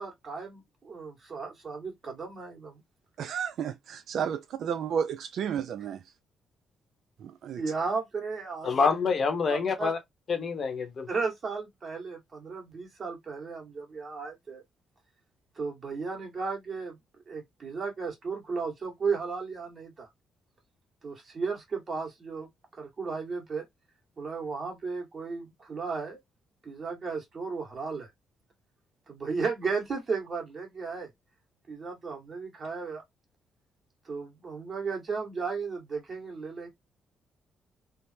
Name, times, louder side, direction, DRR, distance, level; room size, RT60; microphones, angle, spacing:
voice 1, 0.0-2.8 7.6-8.7 9.5-9.9 11.1-14.6 15.5-17.0 17.3-20.1 21.0-22.5 22.8-23.6 24.2-26.2 26.6-28.1 29.1-31.1 31.7-33.0 34.0-36.7, right 4 dB, 40° right, 1.6 m, -34 dB
voice 2, 3.2-6.0 7.2-7.6, right 8 dB, 70° right, 0.4 m, -32 dB
voice 3, 8.6-10.0 10.3-11.1, left 5 dB, 50° left, 0.8 m, -26 dB
3.4 x 2.0 x 2.7 m
cardioid pair, 90°, 0 cm